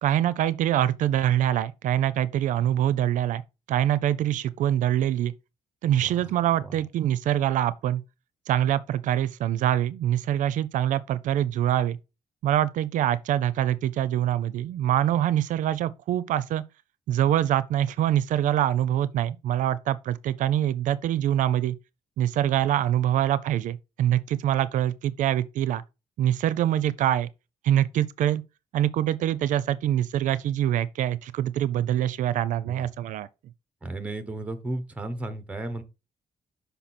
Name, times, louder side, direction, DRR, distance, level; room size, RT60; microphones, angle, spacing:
voice 1, 0.0-3.4 3.7-5.3 5.8-8.0 8.5-12.0 12.4-16.6 17.1-21.8 22.2-25.8 26.2-27.3 27.6-28.4 28.7-33.3, right 11 dB, 70° right, 0.5 m, -24 dB
voice 2, 6.0-6.3 6.6-6.7 32.6-32.8 33.8-35.8, right 2 dB, 10° right, 0.9 m, -34 dB
5.9 x 5.4 x 4.2 m
cardioid pair, 175°, 14 cm